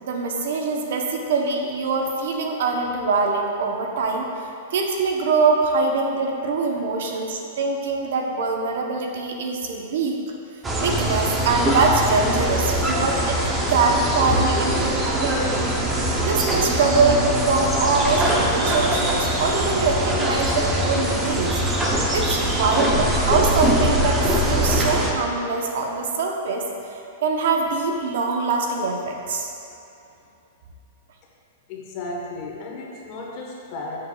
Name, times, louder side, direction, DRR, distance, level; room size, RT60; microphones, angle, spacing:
voice 1, 0.0-4.3 4.7-10.2 10.8-13.4 13.7-15.7 16.2-21.5 21.8-26.6 27.2-29.5, right 4 dB, 70° right, 2 dB, 0.8 m, -23 dB
sound 1, 10.6-25.1, right 1 dB, 15° right, 0.6 m, -22 dB
voice 2, 31.7-34.0, left 2 dB, 40° left, -2 dB, 1.1 m, -34 dB
7.1 x 6.7 x 2.3 m, 2.8 s
supercardioid pair, 155°, 0 cm